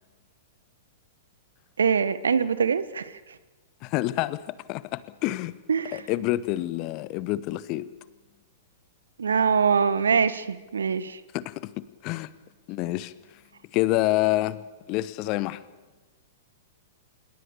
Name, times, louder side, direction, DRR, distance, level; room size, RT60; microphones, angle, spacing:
voice 1, 1.8-3.1 5.7-6.0 9.2-11.2, right 6 dB, 65° right, 15 dB, 1.4 m, -23 dB
voice 2, 3.8-5.5 5.9-7.9 11.3-11.7 12.0-12.3 12.7-13.1 13.7-15.6, left 17 dB, 35° left, 17 dB, 1.2 m, -27 dB
27.0 x 21.5 x 7.0 m, 1.2 s
figure-of-eight pair, 105°, 0 cm